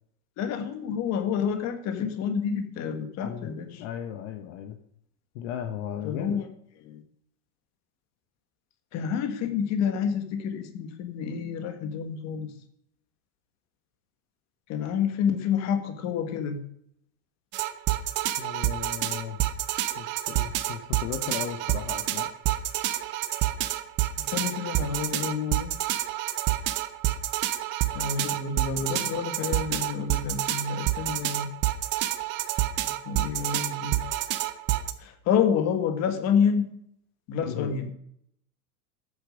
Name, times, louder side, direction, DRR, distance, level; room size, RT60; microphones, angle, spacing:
voice 1, 0.4-3.8 6.0-6.5 6.8-7.0 8.9-12.5 14.7-16.6 24.2-25.7 27.9-31.5 33.0-34.0 35.0-36.7 37.3-37.9, left 7 dB, 35° left, 7 dB, 1.8 m, -28 dB
voice 2, 3.2-4.8 5.3-6.4 18.4-19.4 20.0-22.3 37.5-37.7, left 9 dB, 50° left, 6 dB, 1.4 m, -36 dB
sound 1, 17.5-34.9, right 14 dB, 25° right, 0.5 m, -28 dB
13.5 x 8.8 x 5.1 m, 0.70 s
supercardioid pair, 150°, 49 cm